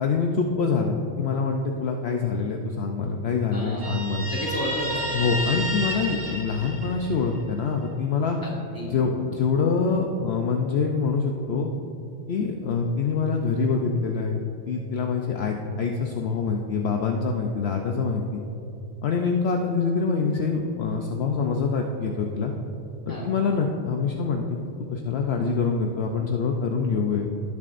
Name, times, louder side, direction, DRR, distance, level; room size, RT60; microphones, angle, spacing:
voice 1, 0.0-4.3 5.1-8.4 8.8-11.7 12.3-14.4 14.7-18.4 19.0-22.5 23.1-24.6 24.9-27.3, left 5 dB, 65° left, 2 dB, 0.9 m, -25 dB
voice 2, 3.5-4.0 4.3-5.3 8.4-9.0 23.1-23.3, equal, 15° left, -4 dB, 1.8 m, -32 dB
Guitar, 3.8-7.4, equal, 65° right, 2.7 m, -31 dB
18.0 x 7.1 x 2.5 m, 2.7 s
omnidirectional pair, 1.2 m